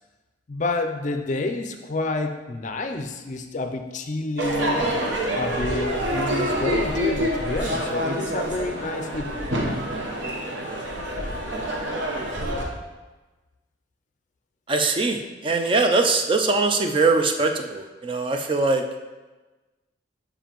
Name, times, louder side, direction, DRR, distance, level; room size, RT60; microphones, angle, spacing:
voice 1, 0.5-4.8 5.3-9.4, left 2 dB, 40° left, 6 dB, 0.4 m, -29 dB
Crowd / Fireworks, 4.4-12.6, equal, 70° right, 1.0 m, -27 dB
voice 2, 14.7-19.0, right 3 dB, 25° right, 5 dB, 0.4 m, -22 dB
6.9 x 4.9 x 3.0 m, 1.2 s
head